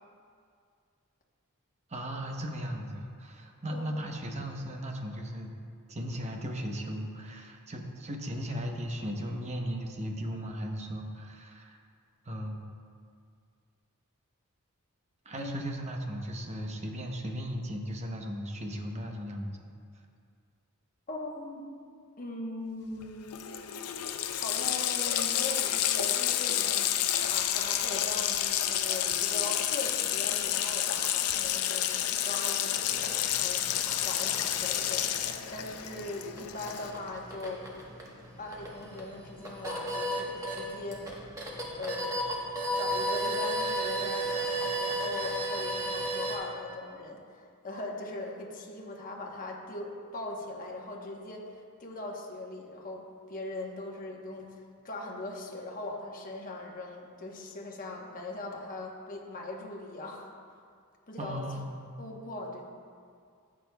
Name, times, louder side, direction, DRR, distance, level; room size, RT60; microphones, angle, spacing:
voice 1, 1.9-5.5 5.9-11.8 12.3-12.6 15.3-19.6 61.2-62.0, equal, 30° right, 2 dB, 0.8 m, -36 dB
voice 2, 15.3-15.7 21.1-21.6 22.2-23.4 24.4-26.9 27.2-33.6 34.0-35.1 35.5-37.7 38.4-41.2 41.8-42.5 42.7-51.5 51.8-60.3 61.1-61.4 62.0-62.7, left 2 dB, 40° left, 0 dB, 1.1 m, -40 dB
Water tap faucet, 23.0-23.1 23.3-37.1, left 11 dB, 80° left, 0.5 m, -30 dB
sound 1, 32.8-46.4, right 1 dB, 15° right, 1.1 m, -35 dB
13.5 x 8.4 x 2.3 m, 2.2 s
head